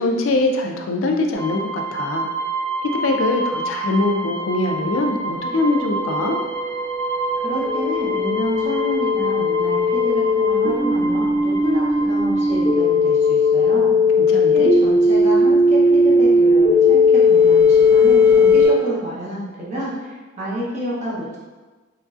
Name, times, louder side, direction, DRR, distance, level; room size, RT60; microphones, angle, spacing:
voice 1, 0.0-2.3 2.8-6.4 14.2-14.7, left 2 dB, 70° left, 3 dB, 0.3 m, -22 dB
sound 1, 1.3-13.8, right 2 dB, 85° right, 1.3 m, -29 dB
sound 2, 5.4-18.7, left 3 dB, 20° left, 0.6 m, -17 dB
voice 2, 7.4-13.9 14.5-21.4, equal, 35° right, -7 dB, 0.7 m, -29 dB
3.0 x 2.5 x 2.4 m, 1.3 s
head